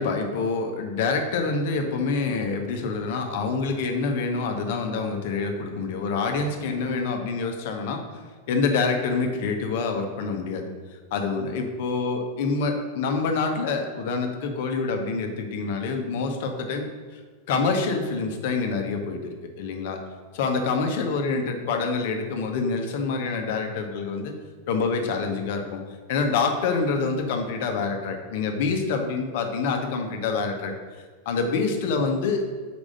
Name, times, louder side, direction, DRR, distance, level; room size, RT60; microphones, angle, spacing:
voice 1, 0.0-8.0 8.5-10.7 11.1-16.9 17.1-17.2 17.5-20.0 20.3-24.3 24.7-25.8 26.1-30.7 31.2-32.4, left 4 dB, 50° left, 5 dB, 1.0 m, -26 dB
5.2 x 4.9 x 6.3 m, 1.5 s
figure-of-eight pair, 90°, 0 cm